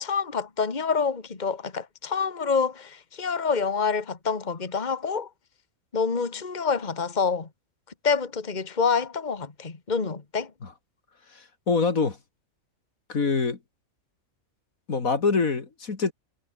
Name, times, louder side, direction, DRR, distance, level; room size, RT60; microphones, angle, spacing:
voice 1, 0.0-5.3 5.9-7.5 8.0-10.5, left 5 dB, 30° left, 2.0 m, -27 dB
voice 2, 11.3-12.2 13.1-13.6 14.9-16.1, left 4 dB, 70° left, 2.8 m, -25 dB
omnidirectional pair, 1.5 m